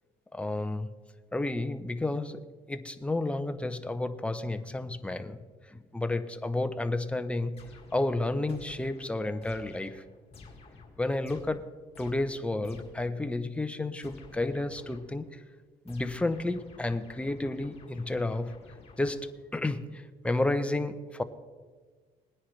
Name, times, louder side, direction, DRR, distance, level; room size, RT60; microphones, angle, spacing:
voice 1, 0.3-0.9 1.3-7.6 7.9-10.1 11.0-15.4 15.8-18.6 19.0-21.2, left 2 dB, 5° left, 0.7 m, -31 dB
sound 1, 7.6-13.2 14.0-15.3 15.9-19.6, left 4 dB, 35° left, 2.1 m, -52 dB
19.5 x 10.0 x 3.3 m
cardioid pair, 110°, 17 cm